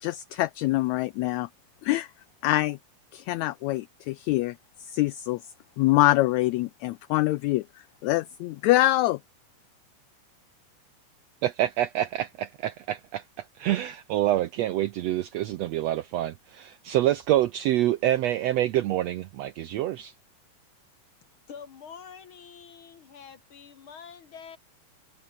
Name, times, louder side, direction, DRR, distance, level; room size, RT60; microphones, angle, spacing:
voice 1, 0.0-1.5 1.8-2.1 2.4-2.8 3.1-4.5 4.8-5.4 5.8-7.6 8.0-9.2, left 17 dB, 85° left, 1.6 m, -24 dB
voice 2, 11.4-20.1, right 13 dB, 75° right, 1.5 m, -27 dB
voice 3, 21.5-24.6, left 7 dB, 50° left, 2.0 m, -46 dB
omnidirectional pair, 3.7 m